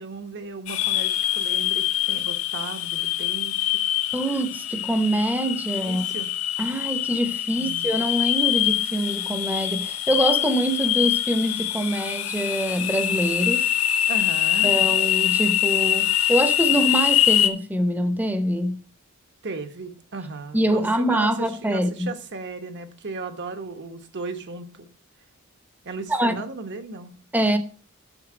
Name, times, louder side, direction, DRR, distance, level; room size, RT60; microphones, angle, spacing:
voice 1, 0.0-3.7 5.7-6.3 7.6-7.9 14.1-14.7 19.4-24.9 25.8-27.1, right 3 dB, 55° right, 1.1 m, -35 dB
sound 1, 0.7-17.5, left 12 dB, 75° left, 0.8 m, -24 dB
voice 2, 4.1-6.0 6.6-13.7 14.6-18.8 20.5-22.1 26.1-26.4 27.3-27.6, right 1 dB, 10° right, 0.8 m, -24 dB
8.0 x 6.7 x 5.0 m
head